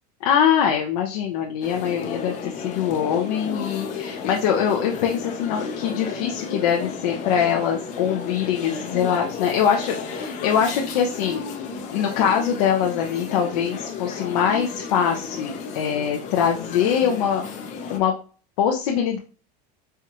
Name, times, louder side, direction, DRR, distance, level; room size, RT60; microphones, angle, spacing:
voice 1, 0.2-11.4 11.9-17.4 17.9-18.1 18.6-19.2, left 8 dB, 75° left, 1 dB, 0.7 m, -23 dB
sound 1, 1.6-18.0, left 5 dB, 35° left, 0.6 m, -33 dB
4.5 x 2.4 x 2.8 m, 0.37 s
supercardioid pair, 150°, 21 cm